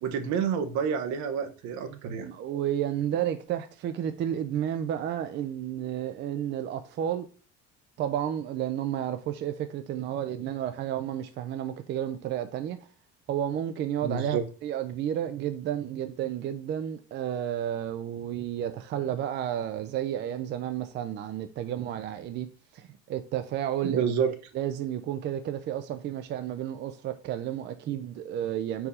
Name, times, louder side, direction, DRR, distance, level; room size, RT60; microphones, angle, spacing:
voice 1, 0.0-2.3 14.0-14.4 23.8-24.3, right 7 dB, 70° right, 0.9 m, -28 dB
voice 2, 1.9-7.3 8.0-12.8 13.3-22.5 22.7-24.1 24.5-28.9, right 10 dB, 40° right, 0.4 m, -31 dB
5.0 x 4.6 x 4.2 m
cardioid pair, 165°, 30 cm